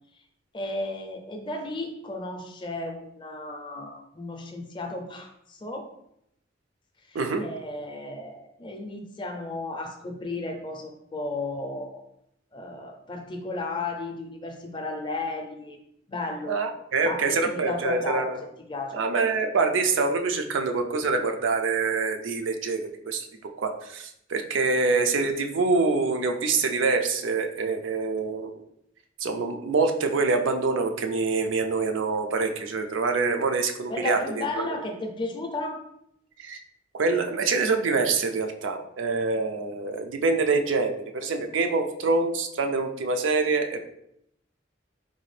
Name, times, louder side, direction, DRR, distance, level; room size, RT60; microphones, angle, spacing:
voice 1, 0.5-5.9 7.1-12.0 12.5-15.8 16.1-16.5 17.0-18.4 18.7-19.0 33.9-35.8, left 2 dB, 25° left, 4 dB, 0.4 m, -34 dB
voice 2, 16.5-18.4 18.9-23.3 23.6-28.6 29.2-34.4 36.4-36.6 36.9-43.8, right 4 dB, 85° right, 5 dB, 0.4 m, -25 dB
3.8 x 2.4 x 3.2 m, 0.77 s
head